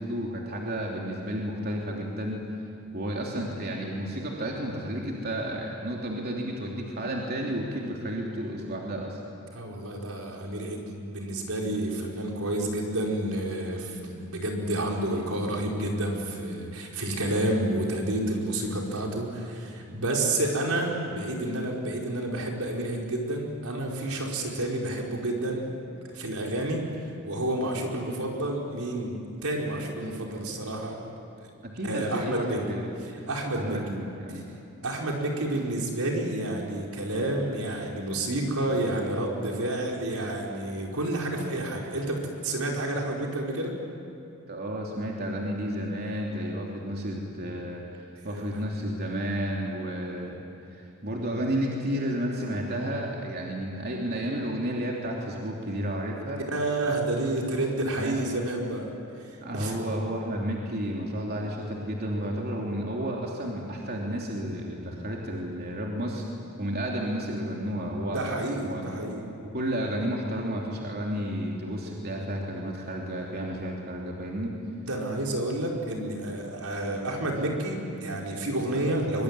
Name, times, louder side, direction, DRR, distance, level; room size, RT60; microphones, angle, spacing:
voice 1, 0.0-2.4 2.9-9.2 31.6-32.9 33.6-34.4 44.5-50.4 50.7-56.4 58.0-58.2 59.4-66.2 66.6-68.2 68.6-68.9 69.5-74.5, equal, 45° right, -2 dB, 3.2 m, -32 dB
voice 2, 9.5-25.7 26.1-26.9 27.2-31.0 31.4-31.5 31.8-32.8 33.3-34.0 34.3-34.4 34.8-43.8 48.2-48.6 56.4-58.9 59.2-59.8 68.1-69.2 74.9-79.2, right 1 dB, 75° right, -1 dB, 4.9 m, -30 dB
24.0 x 24.0 x 9.8 m, 2.8 s
head